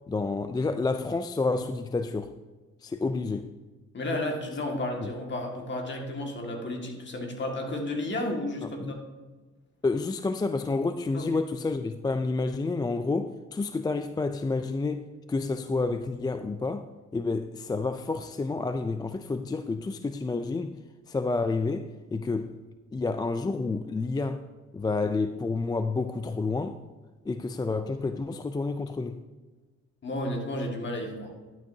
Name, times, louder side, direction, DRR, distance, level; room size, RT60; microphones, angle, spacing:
voice 1, 0.1-2.3 2.8-3.5 5.0-5.1 8.6-9.0 9.8-20.8 21.1-22.6 22.9-24.4 24.7-26.8 27.3-29.2, left 3 dB, 15° left, 0.3 m, -29 dB
voice 2, 3.9-9.0 11.1-11.3 30.0-31.3, left 1 dB, 40° left, 1.9 m, -32 dB
11.5 x 8.8 x 2.7 m
cardioid pair, 90°, 30 cm